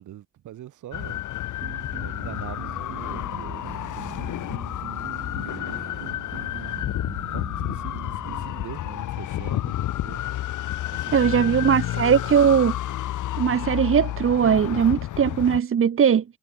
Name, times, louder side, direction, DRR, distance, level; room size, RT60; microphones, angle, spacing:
voice 1, 0.0-1.6 1.9-3.9 5.2-6.1 6.5-7.0 7.3-10.2 10.9-11.7, right 12 dB, 75° right, 6.2 m, -43 dB
sound 1, 0.9-15.6, left 13 dB, 80° left, 3.7 m, -30 dB
sound 2, 1.6-8.5, right 9 dB, 60° right, 5.6 m, -41 dB
voice 2, 11.1-12.7 13.4-16.2, right 8 dB, 45° right, 1.5 m, -19 dB
cardioid pair, 90°, 30 cm